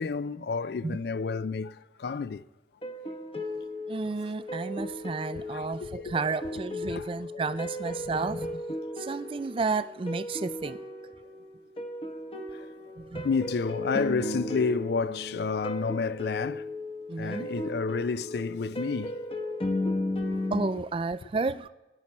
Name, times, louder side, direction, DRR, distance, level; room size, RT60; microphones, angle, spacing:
voice 1, 0.0-2.4 3.0-3.1 5.3-6.2 6.8-7.1 12.5-12.7 13.2-16.6 17.2-19.1, left 5 dB, 60° left, 0.4 m, -30 dB
sound 1, 2.8-20.7, left 1 dB, 30° left, 1.0 m, -35 dB
voice 2, 3.9-8.6 9.0-10.8 13.0-13.3 17.1-17.5 20.5-21.7, right 4 dB, 30° right, 0.3 m, -32 dB
19.0 x 11.0 x 4.2 m
head